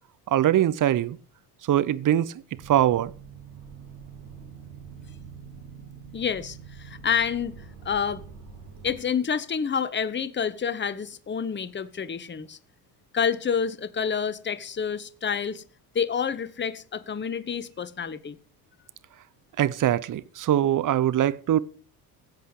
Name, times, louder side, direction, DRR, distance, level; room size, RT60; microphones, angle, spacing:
voice 1, 0.3-1.2 1.6-2.3 2.7-3.1 19.6-21.6, right 11 dB, 40° right, 0.9 m, -22 dB
sound 1, 2.5-9.0, right 6 dB, 70° right, 6.7 m, -45 dB
voice 2, 6.1-7.6 7.8-8.2 8.8-12.6 13.1-15.6 15.9-18.4, left 7 dB, 25° left, 1.1 m, -28 dB
16.5 x 7.9 x 4.9 m
hypercardioid pair, 70°, 47 cm